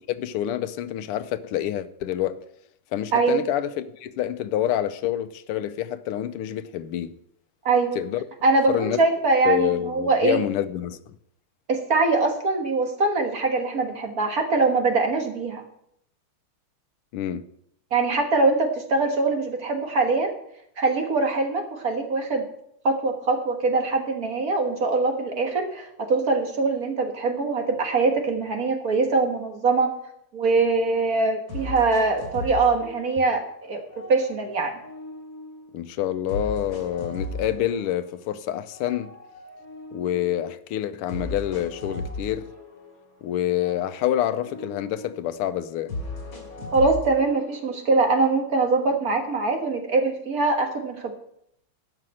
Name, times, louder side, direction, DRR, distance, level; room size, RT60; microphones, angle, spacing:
voice 1, 0.1-2.4 2.9-7.1 7.9-8.2 8.7-9.0 9.4-11.1 17.1-17.4 35.7-39.1 39.9-42.5 43.2-45.9, left 11 dB, 90° left, 1.6 m, -27 dB
voice 2, 7.6-8.0 8.4-10.4 11.7-15.6 17.9-20.3 20.8-22.5 22.8-29.9 30.3-33.8 34.1-34.8 46.7-51.1, right 3 dB, 45° right, 1.7 m, -23 dB
sound 1, 30.8-30.9 31.5-33.5 33.9-35.7 36.3-38.3 38.7-40.5 41.1-43.2 43.5-45.3 45.9-47.9, left 2 dB, 65° left, 3.6 m, -37 dB
12.5 x 5.9 x 7.6 m
omnidirectional pair, 2.4 m